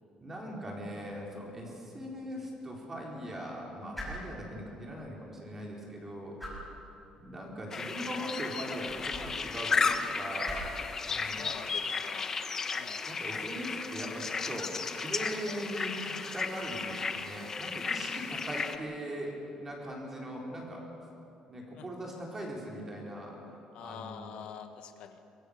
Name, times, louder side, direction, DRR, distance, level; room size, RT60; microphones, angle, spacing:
voice 1, 0.2-6.4 7.2-10.7 11.1-11.6 13.0-20.8 21.5-24.4, equal, 15° right, -2 dB, 4.2 m, -40 dB
sound 1, 1.5-14.5, equal, 5° left, 6.4 m, -49 dB
sound 2, 7.7-18.8, left 5 dB, 25° left, 1.0 m, -34 dB
voice 2, 11.1-12.3 12.7-13.0 21.7-21.9 23.7-25.2, left 8 dB, 60° left, 7 dB, 1.2 m, -46 dB
23.5 x 22.5 x 6.6 m, 2.9 s
cardioid pair, 175°, 2 cm